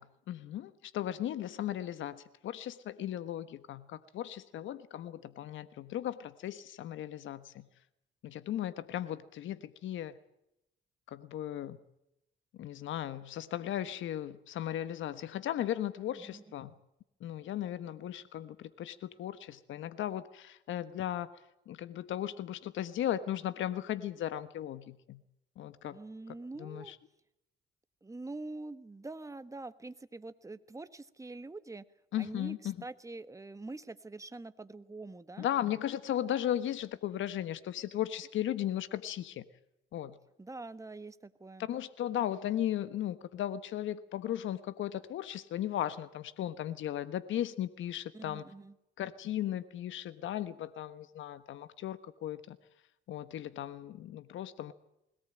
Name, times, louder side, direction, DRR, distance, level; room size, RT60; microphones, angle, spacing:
voice 1, 0.0-7.7 8.2-10.2 11.1-11.8 12.5-16.7 17.2-21.3 21.7-25.2 25.6-26.0 26.6-27.0 32.1-32.7 35.4-39.4 39.9-40.2 41.7-48.4 49.0-52.6 53.1-54.7, left 11 dB, 80° left, 13 dB, 1.3 m, -36 dB
voice 2, 25.8-26.9 28.0-31.8 32.2-35.5 40.4-41.7 48.1-48.7, right 2 dB, 15° right, 13 dB, 1.4 m, -45 dB
21.5 x 18.0 x 8.9 m, 0.84 s
cardioid pair, 90°, 20 cm